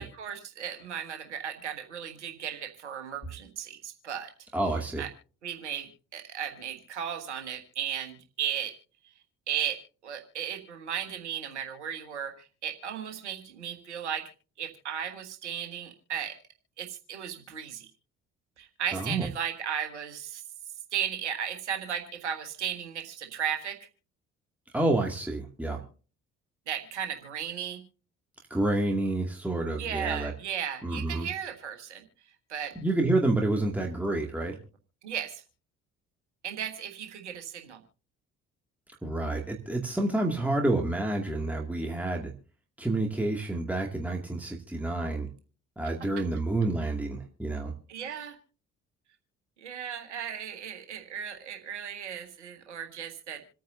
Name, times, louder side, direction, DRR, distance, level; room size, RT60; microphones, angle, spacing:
voice 1, 0.0-4.3 5.0-5.1 5.4-5.9 6.1-8.7 9.5-14.2 14.6-16.3 16.8-17.9 18.6-20.4 20.9-23.8 26.7-27.8 29.8-32.0 32.5-32.7 35.0-35.4 36.4-37.8 47.9-48.3 49.6-53.4, right 9 dB, 80° right, 6 dB, 1.6 m, -35 dB
voice 2, 4.5-5.0 18.9-19.3 24.7-25.8 28.5-30.3 30.8-31.3 32.8-34.6 39.0-42.3 42.8-45.3 45.8-47.7, right 2 dB, 5° right, 1 dB, 2.3 m, -29 dB
27.0 x 9.3 x 2.7 m, 0.38 s
figure-of-eight pair, 45°, 34 cm